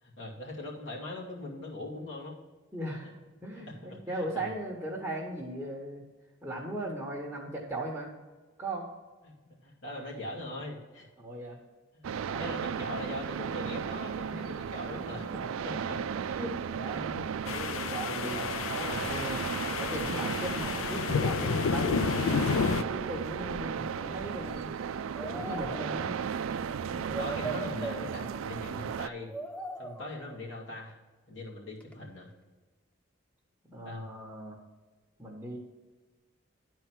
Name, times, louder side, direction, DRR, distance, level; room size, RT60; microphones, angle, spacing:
voice 1, 0.0-2.4 3.7-4.5 9.2-11.1 11.9-16.0 18.2-18.4 26.9-29.3 29.8-30.9 31.3-32.3 33.8-34.1, left 1 dB, 65° left, -4 dB, 2.4 m, -41 dB
voice 2, 2.7-3.1 3.4-6.0 6.4-8.1 8.6-8.9 11.2-11.6 12.3-12.6 14.3-14.5 16.2-19.4 19.8-22.2 22.9-24.7 25.2-26.2 27.1-27.2 33.6-34.6 35.2-35.6, right 1 dB, 10° right, -3 dB, 1.1 m, -38 dB
sound 1, 12.0-29.1, right 7 dB, 80° right, 0.4 m, -35 dB
sound 2, 17.5-22.8, left 5 dB, 80° left, 0.4 m, -30 dB
sound 3, 25.2-26.3 26.9-28.6 29.2-30.5 31.8-31.9, right 1 dB, 5° left, 0.3 m, -40 dB
11.0 x 4.5 x 6.0 m, 1.3 s
head